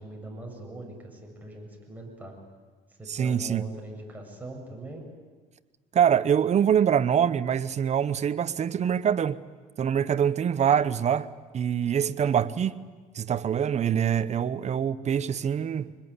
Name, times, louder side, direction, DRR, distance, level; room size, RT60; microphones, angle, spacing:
voice 1, 0.0-2.4 3.0-5.0, right 1 dB, 10° right, 7.2 m, -41 dB
voice 2, 3.1-3.7 5.9-9.4 9.8-11.3 11.5-12.8 13.1-15.9, right 8 dB, 40° right, 1.0 m, -24 dB
25.0 x 21.0 x 9.8 m
cardioid pair, 110°, 17 cm